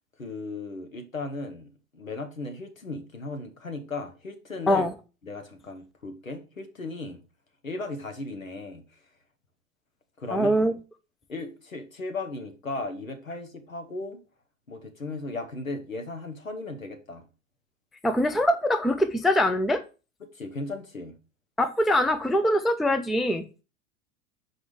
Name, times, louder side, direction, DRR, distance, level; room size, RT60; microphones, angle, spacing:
voice 1, 0.2-4.9 5.2-7.2 7.6-9.0 10.2-10.7 11.3-14.2 14.7-17.2 20.3-21.2, left 2 dB, 90° left, 1.4 m, -36 dB
voice 2, 10.3-10.7 18.0-19.8 21.6-23.4, equal, ahead, 0.4 m, -23 dB
6.2 x 4.8 x 4.9 m
figure-of-eight pair, 85°, 39 cm